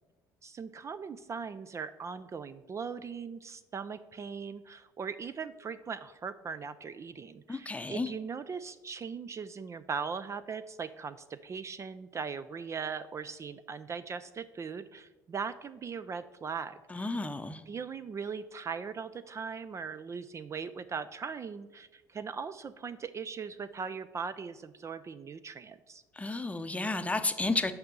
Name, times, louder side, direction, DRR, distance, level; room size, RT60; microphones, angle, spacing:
voice 1, 0.4-17.2 17.7-26.0, right 6 dB, 35° right, 12 dB, 0.4 m, -39 dB
voice 2, 7.5-8.1 16.9-17.6 26.2-27.7, left 2 dB, 15° left, 10 dB, 0.7 m, -32 dB
6.7 x 5.4 x 6.8 m, 1.1 s
hypercardioid pair, 65°, 9 cm